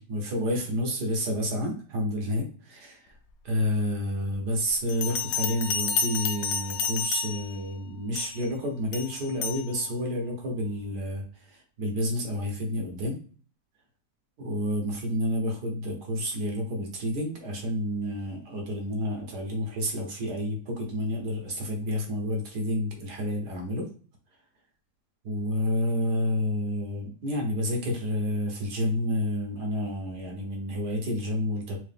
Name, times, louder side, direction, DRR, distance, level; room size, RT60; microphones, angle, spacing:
voice 1, 0.0-3.1 3.4-13.2 14.4-23.9 25.2-31.8, equal, 60° right, 1 dB, 1.5 m, -30 dB
Bell, 4.9-7.6 8.1-8.5 8.9-9.6, left 6 dB, 75° left, 0.7 m, -30 dB
3.8 x 3.1 x 3.5 m, 0.40 s
omnidirectional pair, 2.1 m